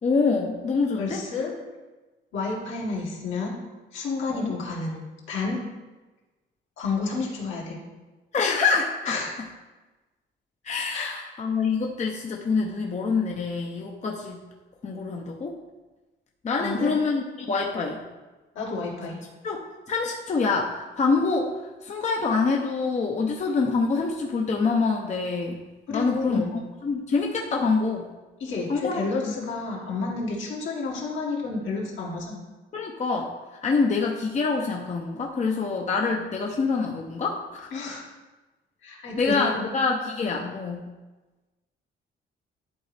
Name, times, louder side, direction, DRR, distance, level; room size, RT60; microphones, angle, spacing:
voice 1, 0.0-1.2 4.3-4.5 8.3-9.2 10.6-14.4 14.8-15.6 16.4-18.0 19.4-25.6 25.9-28.1 28.7-29.5 32.7-33.3 33.6-37.7 39.2-40.9, left 4 dB, 35° left, 0 dB, 0.7 m, -26 dB
voice 2, 1.0-1.5 2.3-3.6 3.9-5.0 5.3-5.6 6.8-7.8 9.1-9.3 10.9-11.2 16.6-17.0 18.6-19.2 25.9-26.5 28.4-32.4 37.7-38.1 38.8-39.7 40.3-40.5, left 3 dB, 75° left, -4 dB, 1.9 m, -30 dB
10.5 x 4.0 x 3.4 m, 1.2 s
cardioid pair, 90°, 20 cm